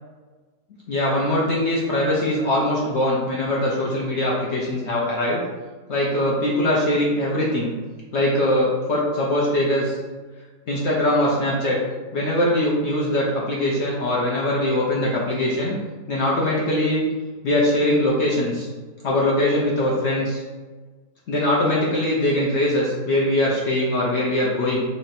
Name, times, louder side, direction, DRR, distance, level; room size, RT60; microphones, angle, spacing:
voice 1, 0.9-5.4 5.9-7.7 8.1-10.0 10.7-11.8 12.1-15.8 16.1-17.0 17.4-18.7 19.0-20.4 21.3-24.8, left 1 dB, 65° left, -4 dB, 0.7 m, -22 dB
3.1 x 2.7 x 4.0 m, 1.4 s
omnidirectional pair, 1.8 m